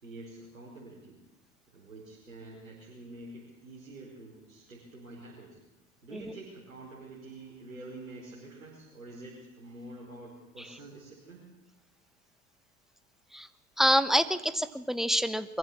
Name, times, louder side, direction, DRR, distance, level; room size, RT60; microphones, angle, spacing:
voice 1, 0.0-1.2 1.7-5.6 6.0-11.5, right 2 dB, 80° right, -5 dB, 5.3 m, -47 dB
voice 2, 13.8-15.6, equal, ahead, 13 dB, 1.2 m, -27 dB
23.5 x 15.0 x 8.7 m, 1.0 s
figure-of-eight pair, 65°, 41 cm